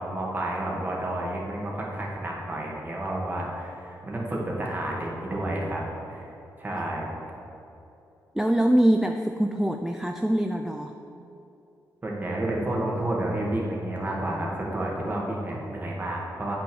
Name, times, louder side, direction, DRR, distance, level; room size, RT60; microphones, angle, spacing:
voice 1, 0.0-5.8 6.1-6.2 6.6-7.1 12.0-16.6, right 1 dB, 25° right, -3 dB, 2.1 m, -30 dB
voice 2, 8.3-11.0, right 1 dB, 5° right, 5 dB, 0.4 m, -24 dB
8.6 x 6.1 x 6.3 m, 2.9 s
cardioid pair, 95°, 7 cm